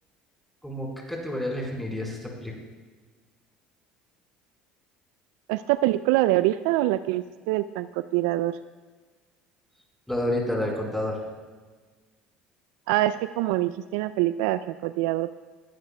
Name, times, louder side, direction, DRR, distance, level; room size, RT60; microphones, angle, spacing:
voice 1, 0.6-2.5 10.1-11.2, left 1 dB, 5° left, -1 dB, 4.4 m, -29 dB
voice 2, 5.5-8.6 12.9-15.4, right 16 dB, 75° right, 13 dB, 0.3 m, -25 dB
20.5 x 11.5 x 2.3 m, 1.4 s
hypercardioid pair, 80°, 4 cm